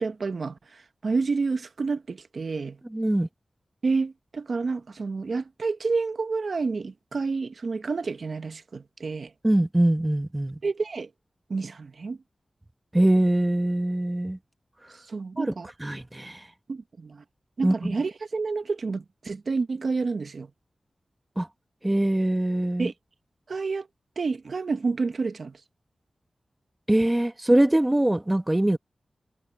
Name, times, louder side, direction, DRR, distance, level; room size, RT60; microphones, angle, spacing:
voice 1, 0.0-2.8 3.8-9.3 10.6-11.1 11.5-12.2 15.1-15.7 16.7-17.2 17.6-20.5 22.8-22.9 23.5-23.9 24.2-25.6, right 4 dB, 65° right, 1.0 m, -29 dB
voice 2, 2.9-3.3 9.4-10.6 12.9-14.4 15.4-15.5 15.8-16.5 17.6-18.0 21.4-21.5 21.8-22.9 26.9-28.8, right 1 dB, 15° right, 1.0 m, -23 dB
wide cardioid pair, 100°, 0 cm